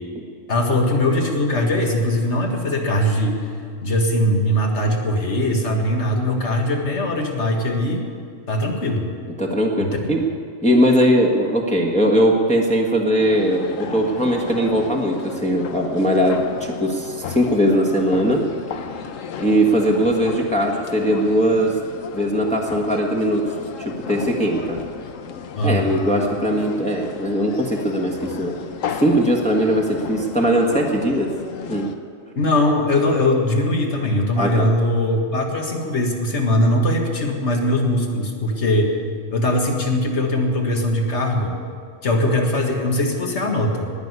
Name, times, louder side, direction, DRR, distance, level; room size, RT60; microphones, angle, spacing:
voice 1, 0.5-3.4 3.8-8.0 8.5-9.1 9.8-9.9 25.6-26.0 32.4-39.0 39.3-41.6 42.0-43.9, left 1 dB, 60° left, 2 dB, 2.0 m, -20 dB
voice 2, 9.4-10.2 10.6-18.4 19.4-21.8 22.1-23.5 23.8-24.8 25.6-28.5 29.0-31.3 31.7-31.9 34.4-34.7, equal, 5° left, -1 dB, 1.4 m, -20 dB
sound 1, 13.2-32.0, left 7 dB, 75° left, 1.2 m, -34 dB
18.5 x 6.2 x 9.6 m, 2.2 s
omnidirectional pair, 1.4 m